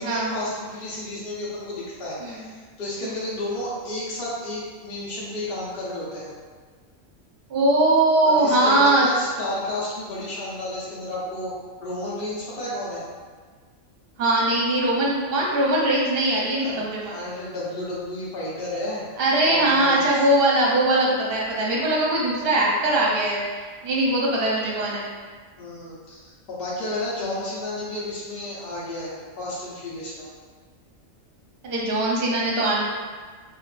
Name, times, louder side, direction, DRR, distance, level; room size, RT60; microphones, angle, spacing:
voice 1, 0.0-6.3 8.2-11.5 11.8-13.0 16.6-19.0 19.5-20.3 25.6-30.3, left 1 dB, 50° left, -7 dB, 1.0 m, -32 dB
voice 2, 7.5-9.1 14.2-17.3 19.2-25.1 31.6-32.8, right 1 dB, 55° right, -4 dB, 0.9 m, -21 dB
3.7 x 2.5 x 2.4 m, 1.5 s
omnidirectional pair, 1.3 m